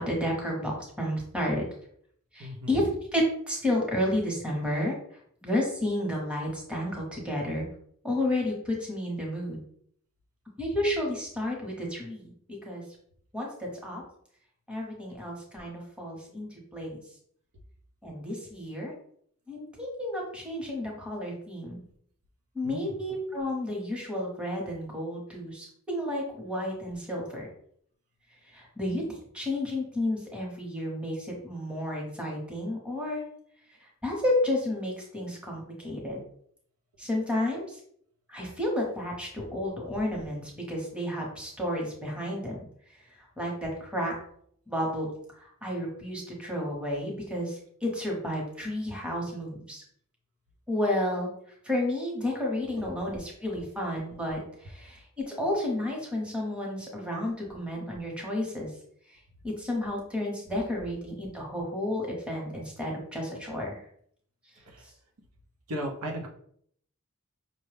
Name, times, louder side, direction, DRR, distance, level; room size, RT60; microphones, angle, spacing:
voice 1, 0.0-1.7 2.3-4.9 5.4-7.6 8.0-9.6 10.6-12.3 12.6-12.8 13.3-14.0 14.7-17.0 18.0-18.9 19.5-21.8 22.5-27.5 28.5-33.2 33.8-36.2 37.0-37.8 38.3-42.6 43.2-44.1 44.7-45.1 45.4-49.8 50.7-51.3 51.6-58.7 59.4-63.9, left 1 dB, 5° right, -2 dB, 0.9 m, -31 dB
voice 2, 2.4-2.9 22.6-22.9 52.8-53.1 64.6-64.8 65.7-66.3, equal, 85° right, 1 dB, 0.8 m, -36 dB
5.4 x 2.2 x 3.3 m, 0.65 s
head